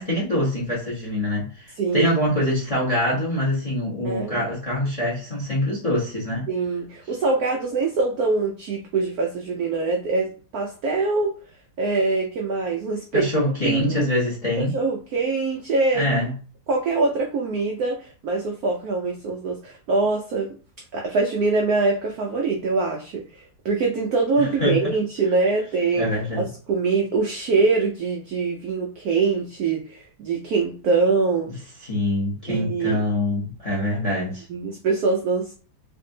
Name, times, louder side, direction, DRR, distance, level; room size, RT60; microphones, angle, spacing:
voice 1, 0.0-6.4 13.1-14.7 15.9-16.3 24.4-24.8 26.0-26.5 31.8-34.4, left 1 dB, 25° left, -6 dB, 0.8 m, -24 dB
voice 2, 1.8-2.2 4.0-4.4 6.5-11.3 11.8-13.3 13.6-14.1 14.6-16.0 16.7-20.6 20.9-26.1 26.4-31.5 32.5-33.0 34.5-35.5, right 3 dB, 80° right, 1 dB, 0.8 m, -24 dB
3.4 x 2.6 x 2.7 m, 0.38 s
omnidirectional pair, 2.2 m